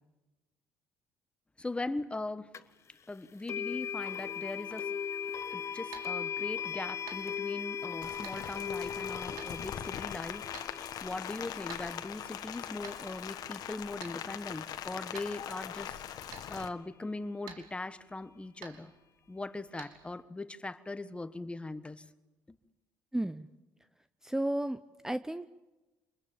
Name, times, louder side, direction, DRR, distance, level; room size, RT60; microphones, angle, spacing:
voice 1, 1.6-2.6 3.1-4.9 5.5-18.9 19.3-22.1 22.5-22.6, left 2 dB, 15° left, 13 dB, 1.4 m, -40 dB
sound 1, 2.5-2.6 3.5-14.5, left 7 dB, 40° left, 1.1 m, -39 dB
sound 2, 5.5-20.1, right 7 dB, 80° right, 3.1 m, -54 dB
Rain, 8.0-16.7, left 10 dB, 65° left, 1.6 m, -41 dB
voice 2, 23.1-23.5 24.2-25.5, right 1 dB, 5° right, 12 dB, 0.8 m, -33 dB
26.5 x 21.0 x 7.4 m, 1.1 s
supercardioid pair, 85°, 7 cm